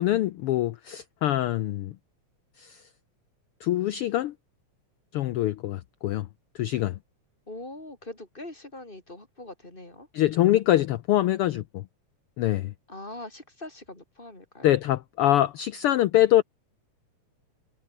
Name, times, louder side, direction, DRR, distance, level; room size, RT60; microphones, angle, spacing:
voice 1, 0.0-2.0 2.6-2.8 3.6-4.3 5.1-6.3 6.5-7.0 10.1-11.8 12.4-12.7 14.6-16.4, left 13 dB, 90° left, 1.2 m, -24 dB
voice 2, 7.5-10.1 12.9-14.7, left 2 dB, 15° left, 4.7 m, -42 dB
omnidirectional pair, 3.4 m